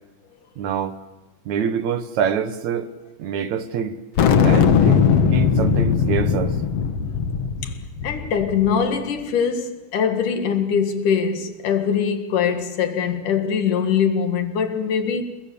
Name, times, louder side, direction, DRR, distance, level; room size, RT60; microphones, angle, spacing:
voice 1, 0.6-1.0 1.5-2.9 3.2-4.0 4.4-6.6, right 7 dB, 70° right, 2.4 m, -25 dB
sound 1, 4.2-8.8, left 6 dB, 60° left, 2.1 m, -19 dB
voice 2, 8.0-15.2, left 7 dB, 80° left, 3.3 m, -22 dB
30.0 x 21.0 x 7.0 m
omnidirectional pair, 3.6 m